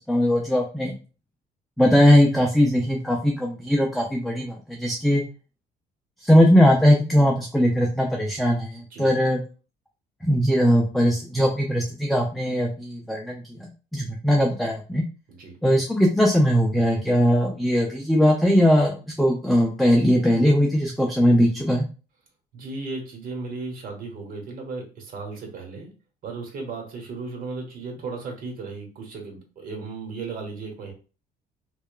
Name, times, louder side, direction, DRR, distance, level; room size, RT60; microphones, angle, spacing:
voice 1, 0.1-0.9 1.8-5.2 6.2-9.4 10.2-13.4 13.9-15.0 15.6-21.9, equal, ahead, 0 dB, 0.3 m, -20 dB
voice 2, 22.5-25.9 26.2-30.9, right 3 dB, 55° right, 1 dB, 1.1 m, -35 dB
2.8 x 2.2 x 2.2 m, 0.34 s
cardioid pair, 110°, 17 cm